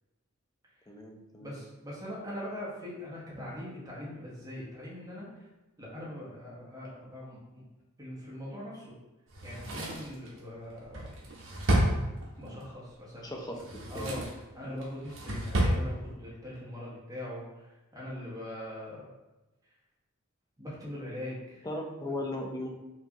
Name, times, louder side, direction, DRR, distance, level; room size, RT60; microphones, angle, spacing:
voice 1, 0.9-1.5 13.2-14.1 14.6-14.8 21.6-22.7, left 1 dB, 20° left, 1 dB, 0.5 m, -38 dB
voice 2, 1.4-5.3 5.8-7.6 8.0-9.0 9.4-11.1 12.4-13.6 13.9-14.2 14.5-19.1 20.6-21.7, left 1 dB, 15° right, -6 dB, 1.1 m, -41 dB
Drawer open or close, 9.3-12.6 13.5-14.4 14.8-15.8 16.1-16.2, right 1 dB, 65° right, 0.9 m, -30 dB
4.6 x 2.7 x 2.9 m, 1.0 s
head